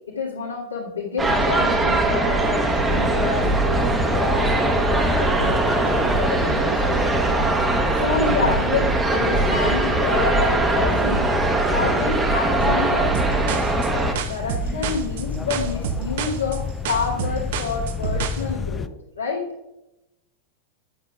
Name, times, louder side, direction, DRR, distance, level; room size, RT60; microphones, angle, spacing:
voice 1, 0.1-13.5 13.9-14.0 14.3-19.4, left 4 dB, 80° left, -10 dB, 2.1 m, -29 dB
sound 1, 1.2-14.1, right 2 dB, 10° right, 0.9 m, -21 dB
sound 2, 2.9-18.9, left 6 dB, 20° left, 0.4 m, -31 dB
sound 3, 13.1-18.4, right 8 dB, 55° right, 0.6 m, -29 dB
9.1 x 7.8 x 2.4 m, 0.91 s
figure-of-eight pair, 90°, 0 cm